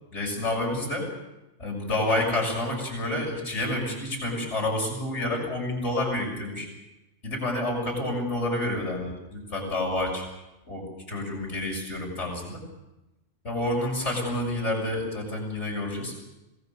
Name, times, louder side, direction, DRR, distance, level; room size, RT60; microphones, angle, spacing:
voice 1, 0.1-1.1 1.6-6.7 7.2-10.3 10.7-12.6 13.4-16.1, left 1 dB, 70° left, 0 dB, 7.2 m, -29 dB
26.5 x 19.0 x 6.9 m, 0.98 s
omnidirectional pair, 1.3 m